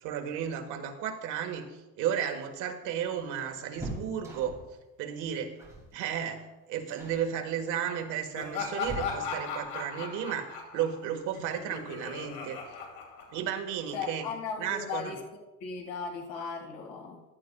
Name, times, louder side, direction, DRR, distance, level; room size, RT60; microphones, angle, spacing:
voice 1, 0.0-4.6 5.0-5.5 5.9-12.6 13.3-14.3 14.6-15.1, right 9 dB, 60° right, 5 dB, 1.4 m, -33 dB
sound 1, 2.1-4.8 5.6-5.9 6.2-6.5 6.9-7.3 8.1-9.6 11.3-11.4 11.8-11.9 13.1-13.5 13.8-13.9 14.2-14.4, right 1 dB, 10° right, 2.4 m, -44 dB
Laughter, 8.3-13.8, left 5 dB, 85° left, 2.7 m, -37 dB
voice 2, 13.9-15.2 15.6-17.2, left 5 dB, 60° left, 2 dB, 2.0 m, -37 dB
15.0 x 11.0 x 2.3 m, 1.1 s
cardioid pair, 170°, 34 cm